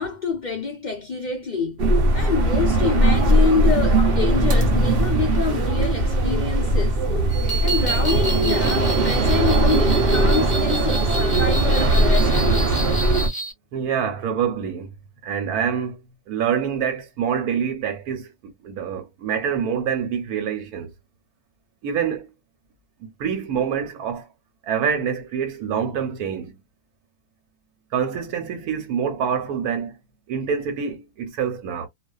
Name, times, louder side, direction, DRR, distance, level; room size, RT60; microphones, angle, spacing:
voice 1, 0.0-1.8 2.1-7.0 7.6-12.8, left 5 dB, 70° left, 0.4 m, -26 dB
sound 1, 1.8-13.3, right 1 dB, 55° right, 0.7 m, -19 dB
sound 2, 7.3-13.5, right 4 dB, 25° left, 0.9 m, -30 dB
voice 2, 13.7-14.9 15.2-16.0 16.3-20.9 21.8-22.3 23.0-24.3 24.6-26.6 27.9-30.0 30.3-31.9, right 7 dB, 85° right, 1.2 m, -26 dB
2.4 x 2.4 x 2.3 m
omnidirectional pair, 1.5 m